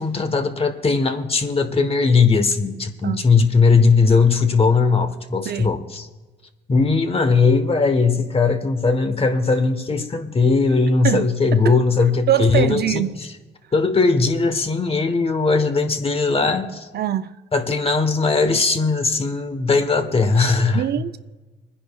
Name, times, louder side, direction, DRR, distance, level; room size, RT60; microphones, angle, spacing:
voice 1, 0.0-6.1 6.7-13.3 13.7-16.9 17.5-20.9, left 4 dB, 30° left, 1.1 m, -19 dB
voice 2, 12.3-13.1 16.9-17.4 20.7-21.2, right 11 dB, 55° right, 0.5 m, -22 dB
27.0 x 10.0 x 2.3 m
cardioid pair, 90°, 20 cm